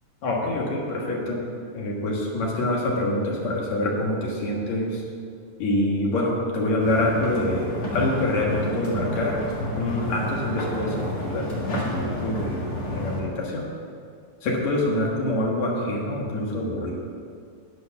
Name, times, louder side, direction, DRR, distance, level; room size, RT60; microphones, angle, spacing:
voice 1, 0.2-5.0 5.6-9.5 9.8-12.7 13.0-13.7 14.4-16.9, left 1 dB, 60° left, -2 dB, 2.8 m, -26 dB
sound 1, 6.8-13.2, equal, 35° left, 1.8 m, -30 dB
10.5 x 9.1 x 5.8 m, 2.3 s
omnidirectional pair, 3.7 m